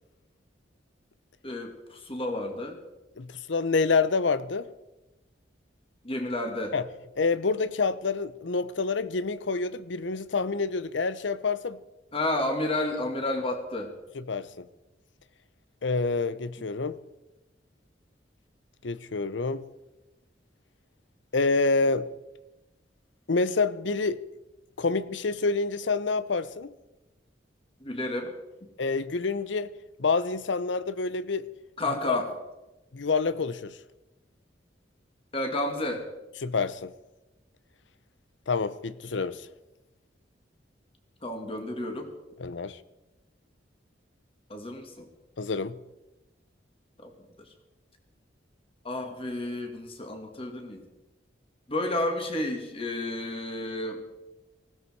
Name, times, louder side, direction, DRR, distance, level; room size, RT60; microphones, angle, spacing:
voice 1, 1.4-2.8 6.0-6.8 12.1-13.9 27.8-28.4 31.8-32.3 35.3-36.1 41.2-42.1 44.5-45.1 47.0-47.1 48.8-50.9 51.7-54.0, left 1 dB, 30° left, 2.4 m, -31 dB
voice 2, 3.2-4.7 6.7-6.8 7.2-11.8 14.1-14.7 15.8-17.0 18.8-19.7 21.3-22.1 23.3-24.2 24.8-26.7 28.8-29.7 30.0-31.5 32.1-32.2 32.9-33.8 36.4-36.9 38.5-39.5 42.4-42.8 45.4-45.8, left 4 dB, 90° left, 0.7 m, -27 dB
19.5 x 16.0 x 4.7 m
head